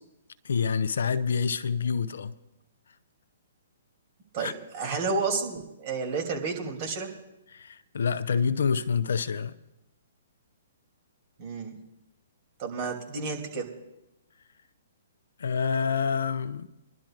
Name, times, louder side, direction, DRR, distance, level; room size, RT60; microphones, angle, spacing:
voice 1, 0.4-2.3 4.4-4.5 7.5-9.6 15.4-16.7, left 6 dB, 70° left, 0.6 m, -27 dB
voice 2, 4.3-7.1 11.4-11.8 12.6-13.7, right 4 dB, 45° right, 3.0 m, -31 dB
24.5 x 11.5 x 2.5 m
hypercardioid pair, 125°, 0 cm